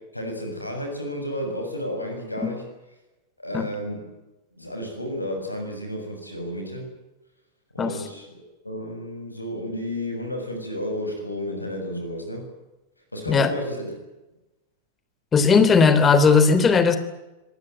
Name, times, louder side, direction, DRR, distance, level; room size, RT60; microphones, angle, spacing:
voice 1, 0.1-2.6 3.4-4.1 4.6-6.9 7.7-8.3 8.6-12.5 13.1-13.9, left 1 dB, 85° left, 4 dB, 6.9 m, -32 dB
voice 2, 15.3-17.0, left 5 dB, 20° left, 12 dB, 3.2 m, -17 dB
25.5 x 18.5 x 9.2 m, 1.0 s
figure-of-eight pair, 90°, 0 cm